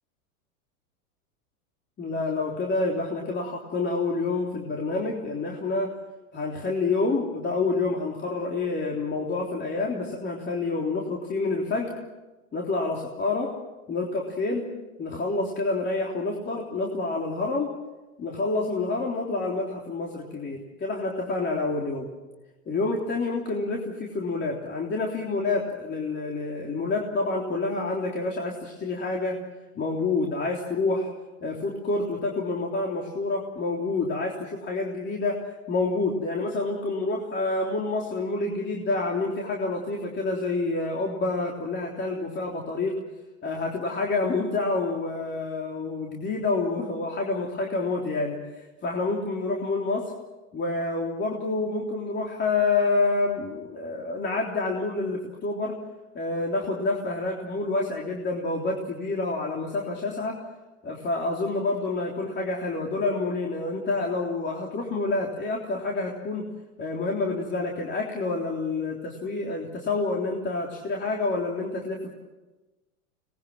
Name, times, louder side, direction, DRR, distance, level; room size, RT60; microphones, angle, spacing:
voice 1, 2.0-5.9 6.3-11.9 12.5-13.5 13.9-14.7 15.0-17.7 18.2-22.1 22.7-29.4 29.8-31.1 31.4-35.4 35.7-42.9 43.4-50.1 50.5-55.7 56.2-60.4 60.8-66.4 66.8-72.1, left 3 dB, 25° left, -1 dB, 3.5 m, -28 dB
25.5 x 20.0 x 7.5 m, 1.1 s
hypercardioid pair, 120°, 43 cm